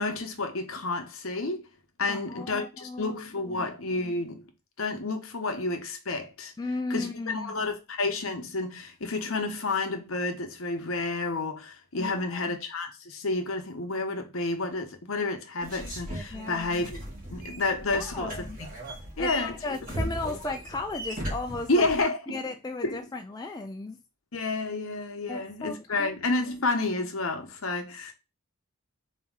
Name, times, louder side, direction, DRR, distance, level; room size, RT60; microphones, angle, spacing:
voice 1, 0.0-1.7 2.0-4.5 4.8-6.5 6.9-16.9 17.3-18.5 19.2-20.1 21.7-22.4 22.8-23.0 24.3-28.1, left 3 dB, 65° left, 0.9 m, -30 dB
voice 2, 2.1-3.7 6.6-7.7 12.0-12.6 16.3-16.9 17.9-18.6 19.2-21.9 22.3-24.0 25.3-26.2, left 3 dB, 20° left, 0.3 m, -36 dB
sound 1, 15.6-22.0, equal, 40° right, 2.0 m, -37 dB
4.0 x 3.0 x 3.6 m
head